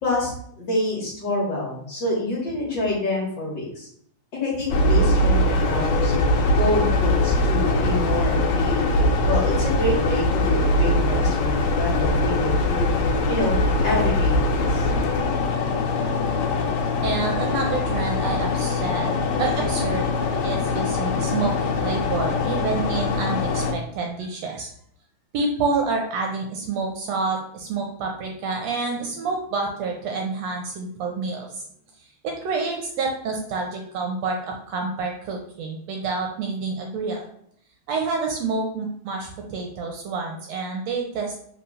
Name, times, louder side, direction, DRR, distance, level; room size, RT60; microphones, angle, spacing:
voice 1, 0.0-3.9 4.3-6.1 6.6-12.9 13.3-13.6 13.8-14.9, left 1 dB, 45° left, -4 dB, 1.9 m, -27 dB
sound 1, 4.7-23.7, left 2 dB, 75° left, 2.0 m, -22 dB
voice 2, 17.0-20.1 20.4-24.7 25.3-31.6 32.0-37.3 37.9-41.3, right 4 dB, 75° right, 2 dB, 1.7 m, -28 dB
4.4 x 3.9 x 5.5 m, 0.65 s
omnidirectional pair, 3.4 m